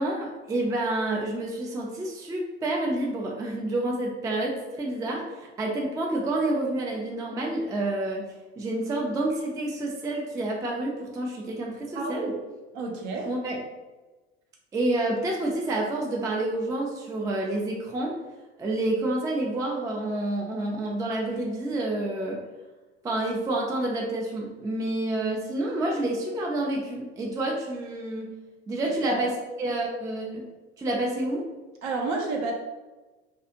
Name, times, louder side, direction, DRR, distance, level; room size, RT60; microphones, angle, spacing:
voice 1, 0.0-8.3 8.6-12.3 13.2-13.6 14.7-18.2 18.6-22.4 23.0-28.3 28.7-30.4 30.8-31.5, right 1 dB, 10° right, -1 dB, 0.3 m, -29 dB
voice 2, 11.9-12.3 12.7-13.3 28.8-29.2 31.8-32.5, right 3 dB, 55° right, 1 dB, 0.7 m, -30 dB
2.5 x 2.3 x 2.8 m, 1.2 s
figure-of-eight pair, 70°, 33 cm